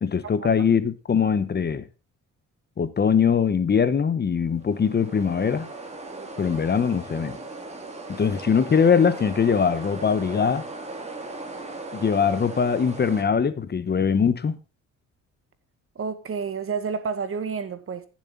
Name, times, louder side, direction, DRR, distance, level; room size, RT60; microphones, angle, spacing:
voice 1, 0.0-1.8 2.8-5.7 6.4-7.4 8.1-10.6 11.9-14.5, left 6 dB, 35° left, 0.9 m, -22 dB
sound 1, 4.5-13.2, right 2 dB, 20° right, 3.3 m, -38 dB
voice 2, 16.0-18.1, right 5 dB, 45° right, 1.7 m, -30 dB
16.0 x 7.4 x 3.8 m
cardioid pair, 90°, 30 cm